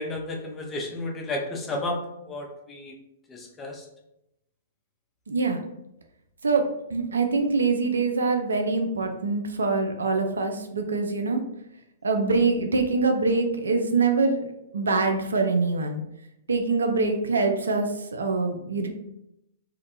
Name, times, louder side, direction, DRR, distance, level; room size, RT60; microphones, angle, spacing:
voice 1, 0.0-2.9 3.3-3.9, left 2 dB, 15° left, 0 dB, 0.5 m, -32 dB
voice 2, 5.3-5.6 6.4-11.4 12.0-16.0 16.5-18.9, right 3 dB, 75° right, 5 dB, 0.4 m, -24 dB
2.4 x 2.1 x 2.7 m, 0.84 s
figure-of-eight pair, 110°, 0 cm